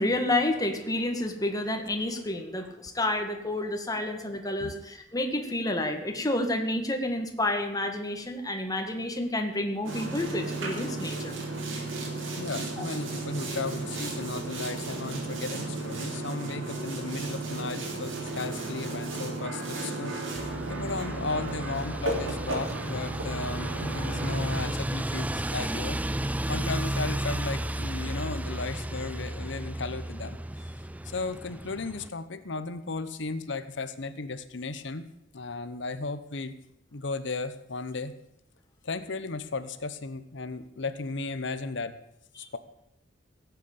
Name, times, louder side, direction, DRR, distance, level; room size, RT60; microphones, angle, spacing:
voice 1, 0.0-11.3 42.4-42.5, left 1 dB, 20° left, 4 dB, 2.1 m, -29 dB
Boat Water vehicle, 9.8-24.7, right 2 dB, 80° right, 4.4 m, -34 dB
voice 2, 12.4-26.0 26.5-30.7 31.0-35.1 35.3-36.6 36.9-38.1 38.8-42.0 42.4-42.6, left 3 dB, 65° left, 12 dB, 1.0 m, -35 dB
sound 1, 20.4-32.1, right 1 dB, 10° right, 0.5 m, -33 dB
17.0 x 8.3 x 8.6 m, 0.81 s
head